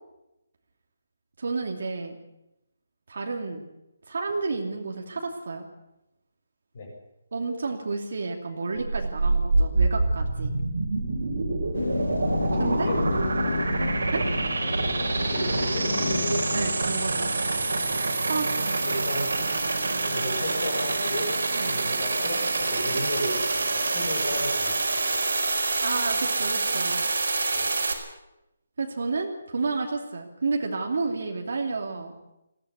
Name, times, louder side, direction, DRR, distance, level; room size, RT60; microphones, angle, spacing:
voice 1, 1.4-2.2 3.1-3.6 4.1-5.7 7.3-10.5 12.6-12.9 14.1-14.2 16.5-17.3 18.2-18.8 21.5-21.8 25.8-27.1 28.8-32.3, right 3 dB, 60° right, 2 dB, 2.8 m, -31 dB
sound 1, 8.8-27.9, right 3 dB, 90° right, 4.8 m, -26 dB
sound 2, 11.7-17.0, left 4 dB, 65° left, 1.0 m, -31 dB
voice 2, 12.4-13.3 15.3-16.4 17.2-17.4 18.8-19.4 20.0-21.3 21.6-24.7 25.1-25.2 27.5-27.7, left 1 dB, 40° left, 1 dB, 6.8 m, -33 dB
20.5 x 16.0 x 8.3 m, 0.92 s
hypercardioid pair, 175°, 0 cm